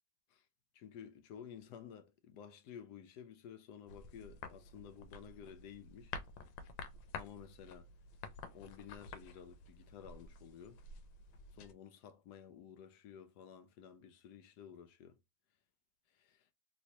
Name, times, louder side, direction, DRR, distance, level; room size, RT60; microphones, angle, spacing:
voice 1, 0.7-6.1 7.1-7.9 8.5-10.8 11.6-15.2 16.1-16.5, left 8 dB, 70° left, 1.1 m, -53 dB
sound 1, 3.9-11.7, left 4 dB, 90° left, 1.3 m, -50 dB
3.1 x 3.1 x 2.7 m
omnidirectional pair, 1.9 m